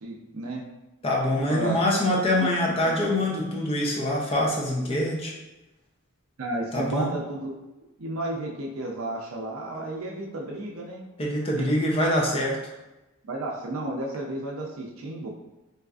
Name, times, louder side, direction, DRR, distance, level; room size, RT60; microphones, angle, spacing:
voice 1, 0.0-0.6 1.5-1.8 2.4-2.5 2.8-2.9 6.4-7.5 8.0-11.0 11.6-11.7 12.0-12.2 13.2-15.3, right 1 dB, 65° right, -1 dB, 0.5 m, -32 dB
voice 2, 1.0-5.3 6.7-7.1 11.2-12.6, left 1 dB, 25° left, -2 dB, 0.5 m, -24 dB
4.0 x 2.4 x 2.3 m, 1.0 s
head